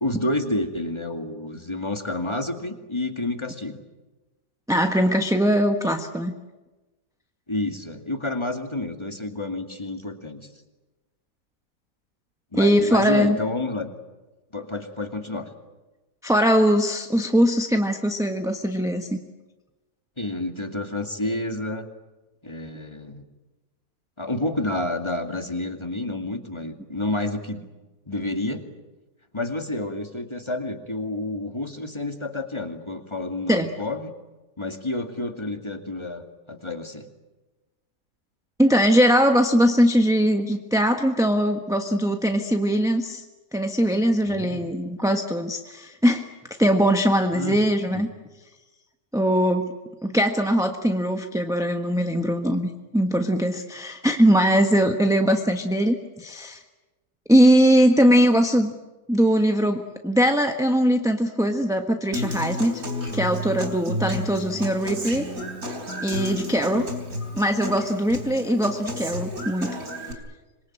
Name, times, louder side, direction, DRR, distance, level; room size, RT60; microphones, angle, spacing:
voice 1, 0.0-3.8 7.5-10.5 12.5-13.9 14.5-15.5 20.2-21.9 22.4-23.2 24.2-27.6 28.1-28.6 29.3-34.1 34.6-37.1 44.3-44.7 47.3-47.6 47.9-48.1 66.7-66.8, left 2 dB, 15° left, 5 dB, 2.2 m, -29 dB
voice 2, 4.7-6.3 12.6-13.4 16.2-19.1 33.5-33.7 38.6-43.2 43.5-46.2 46.6-48.1 49.1-49.7 50.0-56.6 57.3-58.7 59.1-62.8 63.1-65.3 66.0-66.8 67.3-69.7, equal, ahead, 4 dB, 1.1 m, -21 dB
Human voice / Acoustic guitar, 62.1-70.1, equal, 55° right, 4.5 m, -32 dB
26.5 x 22.5 x 8.9 m, 1.1 s
omnidirectional pair, 1.8 m